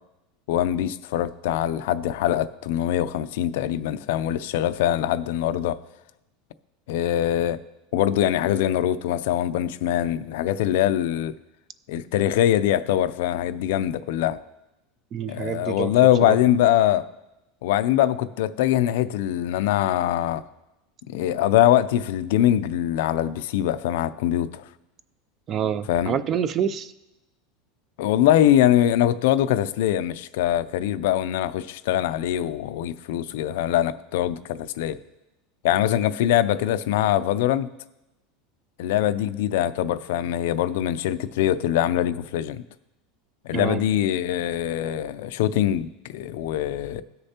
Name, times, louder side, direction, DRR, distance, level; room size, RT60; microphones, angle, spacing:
voice 1, 0.5-5.8 6.9-7.6 7.9-11.4 11.9-14.4 15.3-17.1 17.6-20.4 21.1-24.7 25.9-26.1 28.0-35.0 35.6-37.7 38.8-42.6 43.4-47.0, left 12 dB, 65° left, 14 dB, 0.4 m, -23 dB
voice 2, 15.1-15.9 16.3-16.4 25.5-26.9 43.5-43.8, right 8 dB, 25° right, 15 dB, 0.3 m, -27 dB
18.0 x 6.6 x 2.9 m, 0.96 s
supercardioid pair, 170°, 0 cm